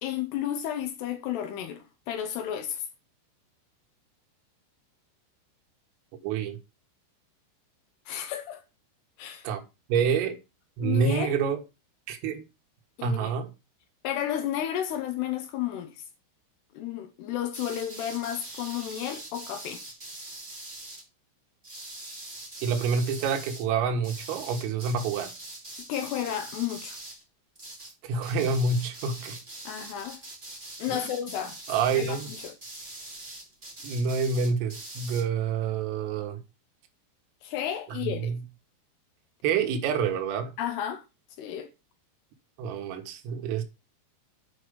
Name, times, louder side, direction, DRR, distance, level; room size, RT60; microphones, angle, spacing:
voice 1, 0.0-2.8 8.1-8.6 9.2-9.5 10.8-11.4 13.0-13.3 14.0-16.0 16.7-19.8 25.9-27.0 29.7-30.2 30.8-31.6 31.9-32.6 37.4-38.4 40.6-41.0 41.4-41.7, left 10 dB, 75° left, 2.5 m, -32 dB
voice 2, 6.2-6.6 9.4-9.6 9.9-10.4 10.8-11.6 12.1-12.4 13.0-13.5 22.6-25.3 28.0-29.4 30.9-31.1 31.7-32.3 33.8-36.4 38.0-38.4 39.4-40.5 42.6-43.6, right 5 dB, 90° right, 4.2 m, -27 dB
sound 1, 17.5-21.0 21.6-23.6 24.0-27.2 27.5-27.9 28.2-35.2, right 2 dB, 15° right, 2.1 m, -43 dB
8.9 x 4.9 x 6.8 m
omnidirectional pair, 5.8 m